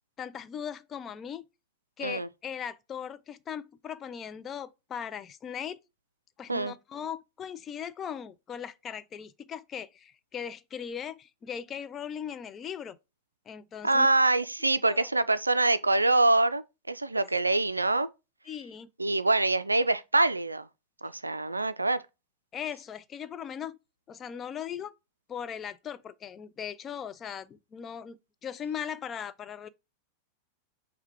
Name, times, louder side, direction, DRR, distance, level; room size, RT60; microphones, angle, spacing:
voice 1, 0.2-1.4 2.0-5.8 6.4-13.0 13.5-14.1 14.9-15.1 17.1-17.2 18.5-18.9 22.5-23.8 24.1-24.9 25.3-29.7, left 8 dB, 25° left, 0.4 m, -39 dB
voice 2, 13.8-18.1 19.0-20.7 21.0-22.0, right 2 dB, 80° right, 0.3 m, -25 dB
5.7 x 2.1 x 4.3 m
figure-of-eight pair, 90°, 0 cm